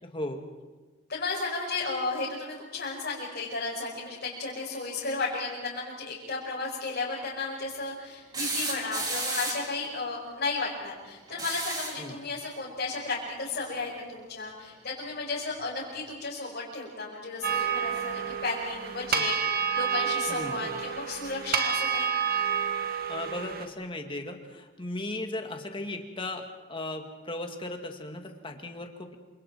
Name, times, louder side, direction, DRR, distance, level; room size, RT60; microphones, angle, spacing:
voice 1, 0.0-0.4 12.0-12.1 19.1-19.3 20.3-20.6 23.1-29.2, left 2 dB, 25° left, 4 dB, 2.2 m, -37 dB
voice 2, 1.1-22.1, left 3 dB, 50° left, -7 dB, 5.6 m, -34 dB
sound 1, 8.3-9.8 11.3-12.1 13.7-13.8 15.3-15.4, right 2 dB, 20° right, 4.0 m, -32 dB
sound 2, 17.4-23.7, right 7 dB, 50° right, 1.7 m, -29 dB
28.0 x 26.5 x 4.7 m, 1.3 s
head